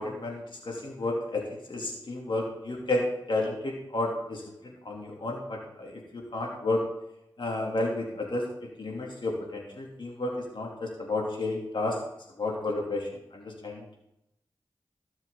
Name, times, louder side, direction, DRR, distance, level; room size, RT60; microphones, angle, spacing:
voice 1, 0.0-6.8 7.4-12.0 12.4-14.0, left 2 dB, 65° left, -1 dB, 3.0 m, -32 dB
15.5 x 7.1 x 3.9 m, 0.82 s
cardioid pair, 40°, 9 cm